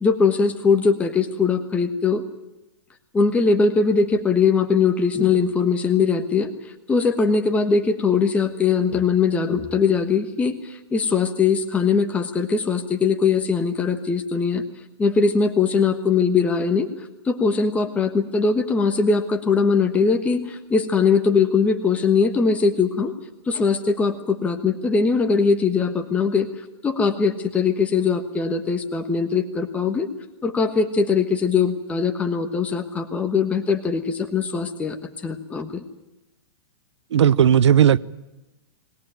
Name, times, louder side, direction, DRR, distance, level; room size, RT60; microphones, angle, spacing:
voice 1, 0.0-2.2 3.1-6.5 6.9-14.6 15.0-16.9 17.2-23.1 23.5-26.5 26.8-30.1 30.4-35.0 35.2-35.8, left 5 dB, 10° left, 6 dB, 1.3 m, -21 dB
voice 2, 37.1-38.0, right 9 dB, 85° right, 19 dB, 0.8 m, -15 dB
22.0 x 17.5 x 9.1 m, 0.99 s
hypercardioid pair, 155°, 14 cm